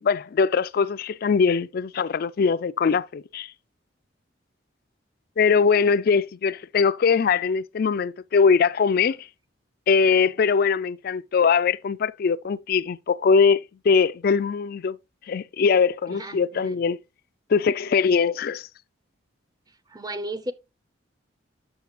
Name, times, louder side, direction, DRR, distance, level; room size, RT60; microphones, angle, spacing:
voice 1, 0.0-3.5 5.4-9.2 9.9-15.0 15.3-17.0 17.5-18.7, left 5 dB, 50° left, 0.4 m, -21 dB
voice 2, 16.1-16.8 19.9-20.5, right 1 dB, 20° right, 0.7 m, -34 dB
8.4 x 6.6 x 2.9 m
head